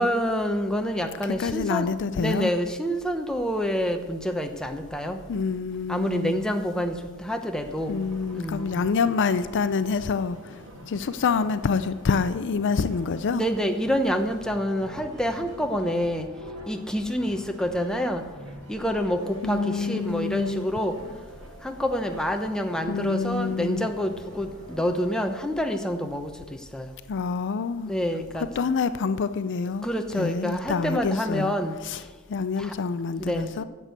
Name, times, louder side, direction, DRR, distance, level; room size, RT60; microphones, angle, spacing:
voice 1, 0.0-1.9 2.2-5.2 5.9-7.9 8.3-8.7 13.3-16.3 16.7-18.2 18.7-21.0 21.6-26.9 27.9-28.5 29.8-31.8 32.6-32.7 33.2-33.6, equal, 5° left, 0.9 m, -27 dB
voice 2, 1.4-2.5 5.3-6.4 7.9-10.6 10.9-13.4 19.4-20.6 22.9-23.9 27.1-27.9 28.6-29.9 30.1-31.5 31.8-32.0 32.3-33.6, left 5 dB, 55° left, 0.4 m, -27 dB
sound 1, 7.6-25.3, equal, 90° right, 3.3 m, -45 dB
11.0 x 7.5 x 8.1 m
head